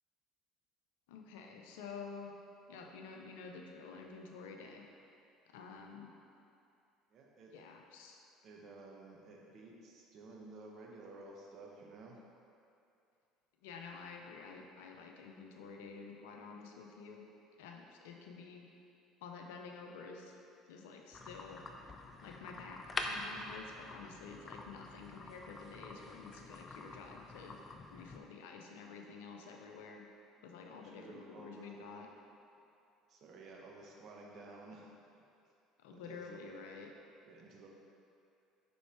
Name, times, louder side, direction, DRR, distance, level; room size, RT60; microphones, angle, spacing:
voice 1, 1.1-2.3 2.7-4.9 5.5-6.1 7.5-8.2 13.6-17.3 17.6-18.7 19.2-20.4 20.7-21.7 22.2-27.6 27.9-30.1 30.4-32.1 35.8-36.9, left 5 dB, 75° left, 2 dB, 0.6 m, -50 dB
voice 2, 7.1-7.5 8.4-12.2 30.6-32.1 33.1-35.2 35.9-36.5 37.3-37.7, right 2 dB, 55° right, -1 dB, 1.1 m, -53 dB
sound 1, 21.1-28.2, left 2 dB, 30° left, 0.6 m, -46 dB
5.2 x 4.5 x 4.6 m, 2.6 s
hypercardioid pair, 65°, 0 cm